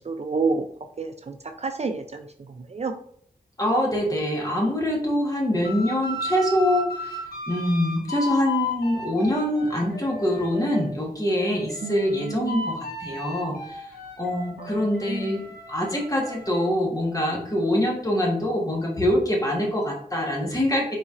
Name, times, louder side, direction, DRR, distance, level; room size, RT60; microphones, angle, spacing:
voice 1, 0.1-0.6 1.0-2.2 2.7-2.9 11.8-12.6 14.6-14.8 15.1-15.3, right 4 dB, 45° right, 6 dB, 0.4 m, -29 dB
voice 2, 3.6-7.2 7.5-13.9 14.2-15.4 15.7-21.0, left 1 dB, 20° left, -1 dB, 1.2 m, -24 dB
sound 1, 5.6-10.9 11.3-16.6, left 2 dB, 85° left, 1.0 m, -35 dB
4.1 x 3.9 x 2.5 m, 0.64 s
wide cardioid pair, 85°, 16 cm